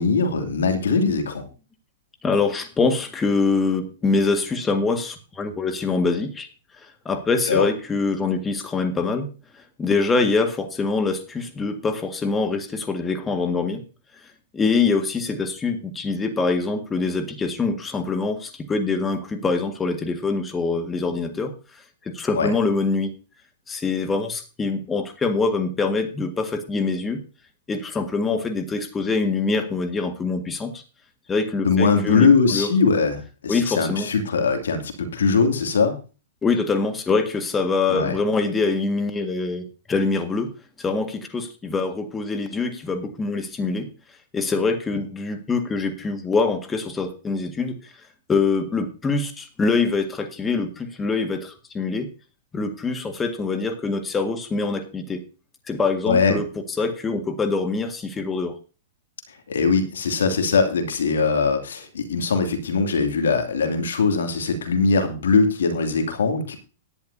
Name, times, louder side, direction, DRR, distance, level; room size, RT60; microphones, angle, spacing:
voice 1, 0.0-1.4 7.5-7.6 22.3-22.5 31.6-35.9 37.9-38.2 56.1-56.4 59.5-66.6, left 4 dB, 75° left, 6 dB, 2.6 m, -21 dB
voice 2, 2.2-6.5 6.8-9.3 9.8-13.8 14.5-21.8 22.1-23.1 23.7-27.2 27.7-30.8 31.3-32.7 33.5-34.1 36.4-40.5 40.8-43.9 44.3-47.9 48.3-52.1 52.5-55.2 55.7-56.5 56.8-58.6, left 4 dB, 15° left, 5 dB, 1.8 m, -24 dB
17.0 x 11.0 x 2.8 m, 0.33 s
hypercardioid pair, 110°, 0 cm